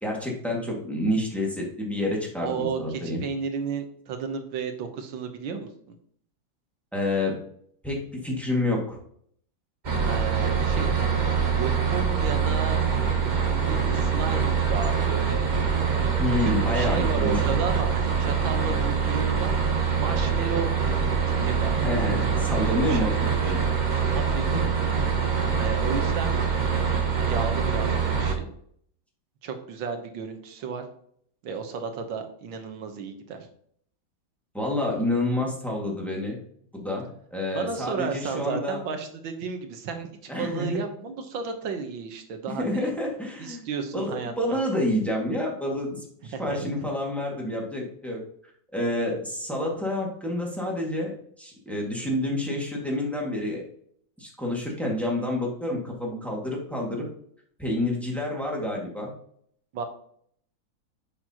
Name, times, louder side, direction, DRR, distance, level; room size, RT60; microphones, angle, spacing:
voice 1, 0.0-3.2 6.9-7.4 7.8-9.0 16.2-17.4 21.8-23.1 23.4-23.6 24.5-24.7 25.6-25.7 34.5-36.4 36.7-38.8 40.3-40.8 42.6-43.6 43.9-48.2 48.7-53.6 54.2-57.0 57.6-59.1, left 1 dB, ahead, -2 dB, 1.8 m, -28 dB
voice 2, 2.4-5.7 10.0-11.0 11.4-12.8 13.2-15.5 16.4-19.5 20.0-21.1 21.4-23.6 24.1-24.5 25.6-26.4 27.3-28.5 29.4-30.8 31.4-33.5 37.5-40.1 40.4-42.9 43.4-44.6 46.3-46.7 59.7-59.9, right 5 dB, 85° right, 6 dB, 1.8 m, -33 dB
sound 1, 9.8-28.3, right 6 dB, 35° right, 0.8 m, -24 dB
7.5 x 6.7 x 2.9 m, 0.64 s
omnidirectional pair, 2.0 m